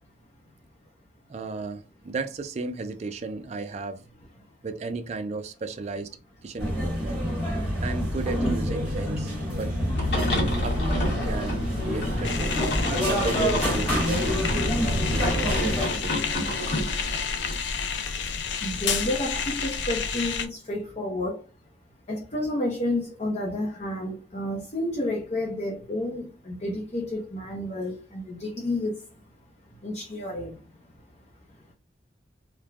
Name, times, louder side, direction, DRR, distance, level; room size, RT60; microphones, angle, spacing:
voice 1, 1.3-4.0 4.6-6.1 6.4-7.2 7.8-9.7 10.1-12.6 13.1-14.4 14.8-16.2, right 3 dB, 40° right, 0.3 m, -34 dB
sound 1, 6.6-15.9, equal, 5° right, 1.4 m, -27 dB
sound 2, 9.9-17.5, equal, 70° left, 0.9 m, -31 dB
sound 3, 12.2-20.5, left 6 dB, 90° left, 0.4 m, -30 dB
voice 2, 18.6-21.5 22.1-29.2 29.7-30.8, left 1 dB, 40° left, 0.6 m, -30 dB
3.1 x 2.1 x 2.3 m
head